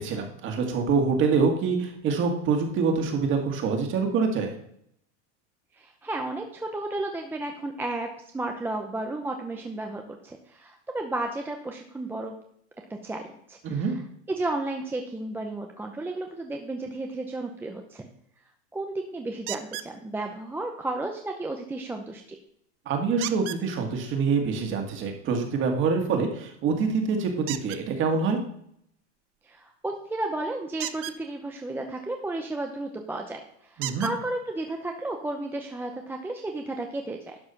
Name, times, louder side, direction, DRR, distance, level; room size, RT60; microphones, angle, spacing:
voice 1, 0.0-4.5 13.6-14.0 22.9-28.4 33.8-34.1, right 5 dB, 35° right, 3 dB, 2.0 m, -25 dB
voice 2, 5.7-8.1 8.3-12.3 13.0-13.2 13.5-14.0 14.3-18.0 18.7-22.4 29.4-37.4, right 2 dB, 5° right, 3 dB, 0.6 m, -33 dB
sound 1, 19.5-19.9 23.2-23.6 27.5-27.8 30.7-31.2 32.8-32.9 33.8-34.2 35.2-35.3 35.7-35.8, right 15 dB, 50° right, 0.7 m, -34 dB
11.5 x 4.7 x 5.8 m, 0.69 s
supercardioid pair, 145°, 34 cm